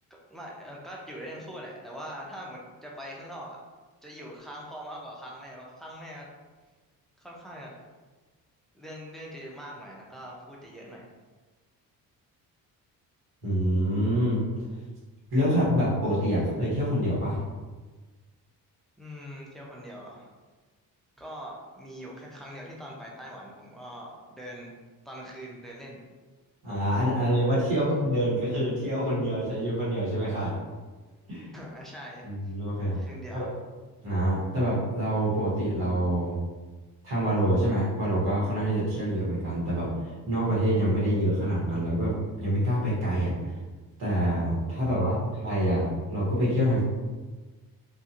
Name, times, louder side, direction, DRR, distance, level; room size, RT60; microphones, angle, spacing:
voice 1, 0.3-3.6 4.0-6.3 7.2-7.7 8.7-11.0 19.0-20.3 21.2-24.7 25.0-26.0 31.5-32.3 32.9-33.5 44.8-45.3, equal, ahead, -3 dB, 0.4 m, -42 dB
voice 2, 13.4-14.4 15.3-17.4 26.6-30.5 31.3-31.5 32.2-33.0 33.3-33.5 34.0-36.4 37.0-39.9 40.3-43.3 44.0-46.8, equal, 80° right, -8 dB, 1.3 m, -26 dB
2.8 x 2.6 x 2.4 m, 1.3 s
cardioid pair, 115°, 37 cm